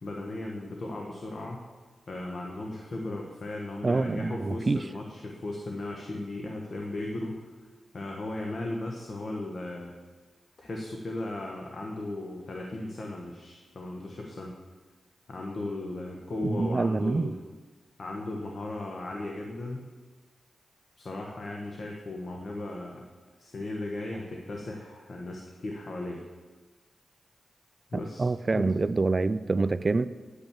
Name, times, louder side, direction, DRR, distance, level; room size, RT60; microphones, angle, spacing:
voice 1, 0.0-1.6 2.1-7.6 7.9-10.0 10.6-14.6 15.3-17.4 18.0-19.9 21.0-23.0 23.4-26.3 27.9-28.7, left 2 dB, 55° left, 0 dB, 1.2 m, -36 dB
voice 2, 3.8-4.8 16.4-17.3 28.2-30.1, right 3 dB, 40° right, 13 dB, 0.4 m, -26 dB
10.0 x 5.6 x 7.3 m, 1.3 s
cardioid pair, 55°, 0 cm